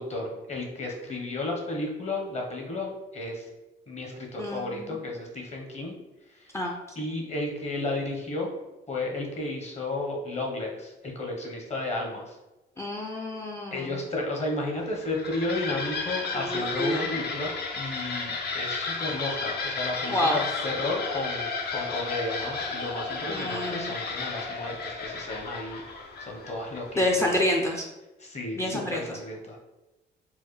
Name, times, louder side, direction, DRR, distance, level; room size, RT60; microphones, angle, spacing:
voice 1, 0.0-3.4 3.9-6.0 6.4-6.6 7.0-8.5 8.9-12.4 13.7-25.8 26.3-27.3 28.2-29.6, left 2 dB, 35° left, 0 dB, 1.0 m, -33 dB
voice 2, 4.4-5.0 6.5-6.7 12.8-14.0 16.3-17.1 20.1-20.4 23.2-24.0 27.0-27.8 28.6-29.2, left 1 dB, 15° left, 1 dB, 0.4 m, -28 dB
sound 1, 14.8-27.4, left 4 dB, 55° left, 0.7 m, -33 dB
4.4 x 2.1 x 3.2 m, 1.0 s
cardioid pair, 90°, 20 cm